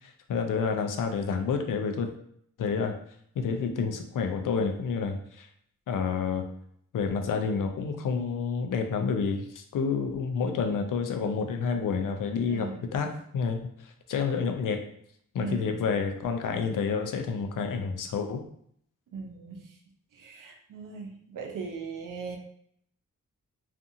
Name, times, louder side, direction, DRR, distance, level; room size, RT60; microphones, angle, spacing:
voice 1, 0.3-2.1 2.6-3.0 3.4-5.5 5.9-6.5 6.9-14.9 15.3-18.4, left 5 dB, 75° left, 5 dB, 0.5 m, -29 dB
voice 2, 12.5-13.0 15.4-15.8 19.1-19.7 20.1-22.4, right 4 dB, 75° right, 2 dB, 0.6 m, -39 dB
2.5 x 2.4 x 2.6 m, 0.67 s
wide cardioid pair, 85°, 32 cm